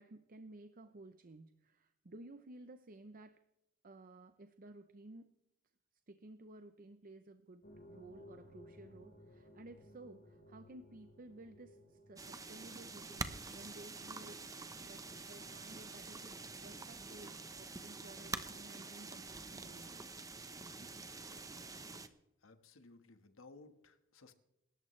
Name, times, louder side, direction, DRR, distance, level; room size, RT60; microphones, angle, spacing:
voice 1, 0.0-3.4 3.8-5.3 6.1-20.0 20.8-21.1, right 2 dB, 45° right, 9 dB, 0.7 m, -55 dB
sound 1, 7.6-20.2 20.5-20.6 21.3-21.4, left 1 dB, 55° left, 4.2 m, -61 dB
sound 2, 12.2-22.1, right 3 dB, 15° right, 0.9 m, -47 dB
voice 2, 22.4-24.3, left 3 dB, 80° left, 8 dB, 1.5 m, -59 dB
26.0 x 13.5 x 3.3 m, 0.89 s
head